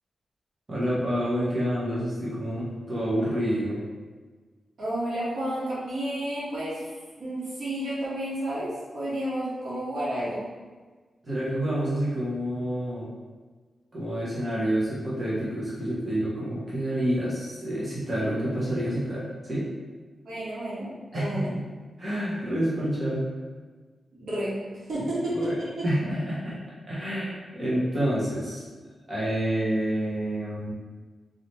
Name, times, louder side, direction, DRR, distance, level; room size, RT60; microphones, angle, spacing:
voice 1, 0.7-3.8 11.2-13.1 13.9-19.7 21.1-21.6 22.0-23.2 25.3-26.6 26.9-28.6 29.1-30.7, right 1 dB, 30° right, -8 dB, 1.1 m, -28 dB
voice 2, 4.8-6.8 7.2-10.4 20.2-21.5 24.1-25.9, right 1 dB, 70° right, -9 dB, 1.5 m, -31 dB
3.9 x 2.9 x 3.2 m, 1.4 s
wide cardioid pair, 130°, 0 cm